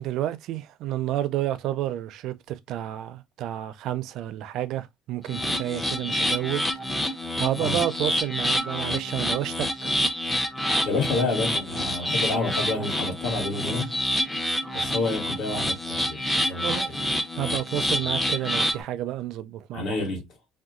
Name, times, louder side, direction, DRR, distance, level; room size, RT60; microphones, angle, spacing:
voice 1, 0.0-6.6 7.4-9.9 13.6-13.9 16.6-17.0 17.4-20.0, right 13 dB, 60° right, 0.4 m, -30 dB
sound 1, 5.3-18.8, left 1 dB, 5° left, 0.4 m, -27 dB
voice 2, 10.8-13.9 14.7-16.2 16.5-17.0 18.0-18.1 19.7-20.2, left 3 dB, 55° left, 1.7 m, -29 dB
2.8 x 2.2 x 3.6 m
cardioid pair, 160°, 0 cm